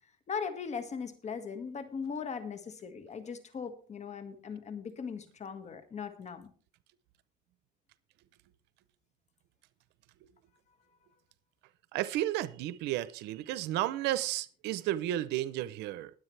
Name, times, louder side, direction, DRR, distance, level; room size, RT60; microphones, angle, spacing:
voice 1, 0.3-6.5, left 6 dB, 40° left, 1.8 m, -39 dB
voice 2, 11.9-16.1, right 14 dB, 90° right, 0.7 m, -32 dB
20.5 x 8.0 x 3.3 m
cardioid pair, 110°, 17 cm